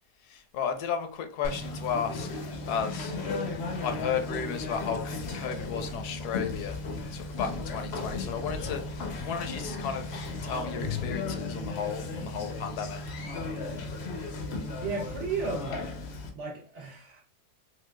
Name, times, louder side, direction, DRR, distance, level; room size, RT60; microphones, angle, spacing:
voice 1, 0.3-2.3 2.6-3.1 3.8-6.8 7.1-10.1 10.4-13.0, left 7 dB, 80° left, 1.1 m, -34 dB
Conversation, 1.4-16.3, left 3 dB, 65° left, 0.7 m, -35 dB
voice 2, 14.8-15.9 16.3-17.2, right 4 dB, 65° right, 0.8 m, -34 dB
3.8 x 2.6 x 2.2 m
omnidirectional pair, 1.7 m